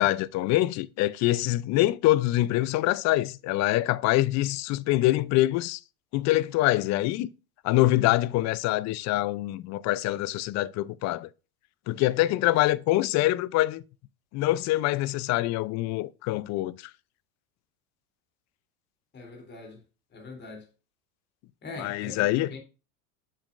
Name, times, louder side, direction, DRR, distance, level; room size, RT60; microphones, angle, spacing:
voice 1, 0.0-5.8 6.1-7.3 7.6-11.3 11.9-13.8 14.3-16.8 21.8-22.5, left 16 dB, 40° left, 0.5 m, -25 dB
voice 2, 19.1-19.8 20.1-20.6 21.6-22.6, left 3 dB, 25° left, 3.2 m, -42 dB
7.4 x 7.4 x 2.5 m
supercardioid pair, 115°, 42 cm